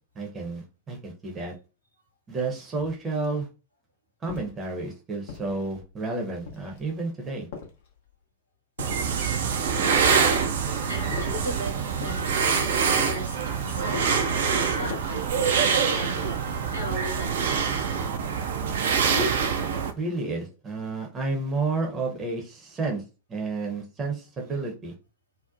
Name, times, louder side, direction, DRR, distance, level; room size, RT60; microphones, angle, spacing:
voice 1, 0.2-1.5 2.3-3.5 4.2-7.5 19.0-19.6 20.0-23.0 23.3-24.9, right 3 dB, 20° right, 1 dB, 0.7 m, -31 dB
sound 1, 4.3-4.7 5.3-5.9 6.4-7.0 7.5-8.2 8.8-9.5 11.1-11.5 12.0-12.3 12.9-13.3 13.9-14.3 14.8-15.2, left 6 dB, 55° left, 0.6 m, -40 dB
sound 2, 8.8-19.9, right 6 dB, 60° right, 0.4 m, -25 dB
voice 2, 9.8-12.3 12.6-13.4 13.6-17.8, right 1 dB, 90° right, 0 dB, 1.1 m, -37 dB
2.7 x 2.0 x 2.4 m, 0.32 s
figure-of-eight pair, 90°, 0 cm